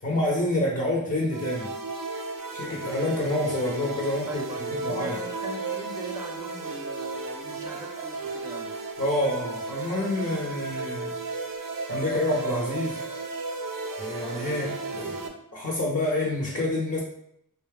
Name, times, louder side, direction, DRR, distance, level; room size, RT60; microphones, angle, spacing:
voice 1, 0.0-1.7 2.5-4.4 4.7-5.2 9.0-11.2 11.9-13.0 14.0-15.3 15.5-17.0, left 1 dB, 40° left, -3 dB, 0.8 m, -28 dB
sound 1, 1.3-15.3, right 3 dB, 70° right, 0.5 m, -34 dB
voice 2, 4.3-8.7, right 1 dB, 10° right, 1 dB, 0.5 m, -40 dB
4.0 x 2.3 x 3.3 m, 0.76 s
wide cardioid pair, 55°, 35 cm